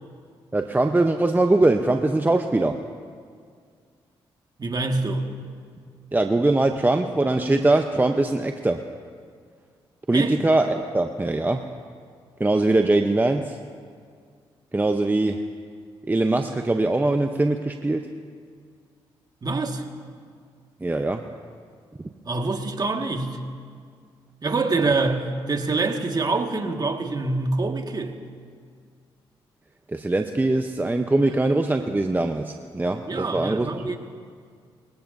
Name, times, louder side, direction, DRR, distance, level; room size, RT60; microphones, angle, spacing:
voice 1, 0.5-2.8 6.1-8.8 10.1-11.6 12.4-13.6 14.7-15.4 16.1-18.1 20.8-21.3 22.0-22.1 29.9-34.0, right 2 dB, 20° right, 5 dB, 0.8 m, -22 dB
voice 2, 4.6-5.3 10.1-10.3 19.4-19.9 22.2-23.4 24.4-28.2 33.1-34.0, right 3 dB, 40° right, 4 dB, 1.8 m, -25 dB
25.5 x 17.5 x 2.7 m, 2.1 s
supercardioid pair, 50°, 11 cm